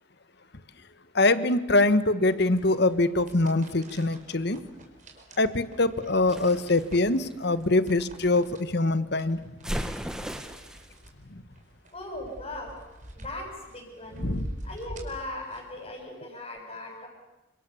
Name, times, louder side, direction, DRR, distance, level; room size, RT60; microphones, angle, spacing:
voice 1, 1.1-4.6 5.4-9.5 11.3-11.4 14.2-14.5, left 2 dB, 55° left, 13 dB, 1.3 m, -24 dB
sound 1, 2.2-15.9, equal, 40° right, 4.8 m, -44 dB
sound 2, 6.3-8.2 9.6-10.9, equal, 5° right, 1.7 m, -36 dB
voice 2, 11.9-12.8 13.1-14.3 14.6-17.1, left 1 dB, 30° left, 2 dB, 7.5 m, -38 dB
29.5 x 26.0 x 7.1 m, 1.0 s
head